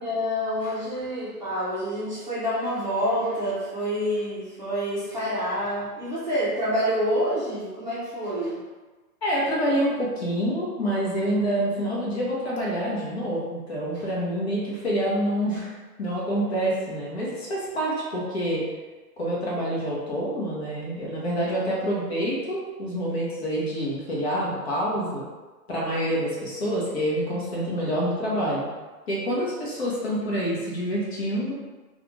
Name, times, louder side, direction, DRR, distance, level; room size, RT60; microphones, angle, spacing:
voice 1, 0.0-8.6, equal, 30° right, -10 dB, 0.6 m, -27 dB
voice 2, 9.2-18.7 19.2-25.2 25.7-28.7 29.1-31.5, equal, 40° left, -6 dB, 0.8 m, -27 dB
2.4 x 2.4 x 3.0 m, 1.2 s
hypercardioid pair, 170°, 48 cm